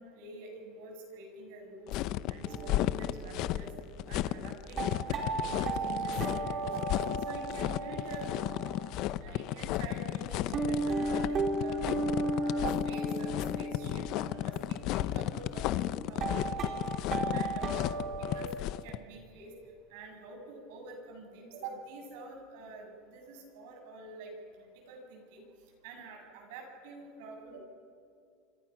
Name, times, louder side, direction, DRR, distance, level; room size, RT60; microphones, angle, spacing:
voice 1, 0.0-1.9 2.3-3.7 4.1-6.9 7.2-8.3 9.2-11.8 12.2-13.3 13.6-15.7 16.0-16.8 17.3-18.0 18.3-18.5 18.8-19.5 19.9-24.3 24.6-25.4 25.8-27.6, right 3 dB, 75° right, 3 dB, 7.2 m, -46 dB
sound 1, 1.9-19.0, left 14 dB, 55° left, 0.8 m, -33 dB
sound 2, 2.5-9.0 9.7-9.8 10.3-18.4, right 2 dB, 35° right, 3.9 m, -35 dB
28.5 x 25.0 x 6.0 m, 2.3 s
supercardioid pair, 140°, 0 cm